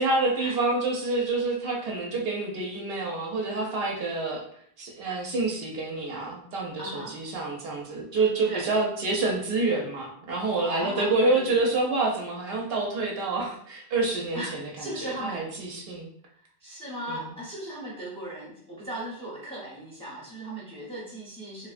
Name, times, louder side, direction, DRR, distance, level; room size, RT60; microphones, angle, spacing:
voice 1, 0.0-4.4 4.8-16.1 17.1-17.3, right 3 dB, 70° right, -1 dB, 0.8 m, -27 dB
voice 2, 6.8-7.1 8.5-8.7 10.6-11.5 14.3-15.5 16.6-21.7, right 1 dB, 5° left, -6 dB, 0.7 m, -37 dB
2.8 x 2.0 x 2.4 m, 0.65 s
omnidirectional pair, 1.1 m